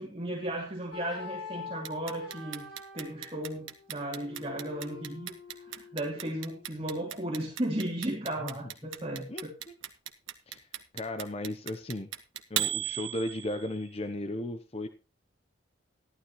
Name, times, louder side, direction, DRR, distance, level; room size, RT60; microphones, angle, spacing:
voice 1, 0.0-2.6 2.9-5.3 5.7-9.5, right 1 dB, 30° right, -2 dB, 2.7 m, -35 dB
sound 1, 0.9-6.8, left 5 dB, 55° left, 5.0 m, -46 dB
Clock, 1.8-13.8, right 12 dB, 80° right, 1.4 m, -36 dB
voice 2, 9.3-9.8 10.5-10.7 10.9-12.1 12.5-14.9, left 1 dB, 30° left, 9 dB, 0.7 m, -35 dB
14.5 x 12.0 x 3.0 m, 0.29 s
head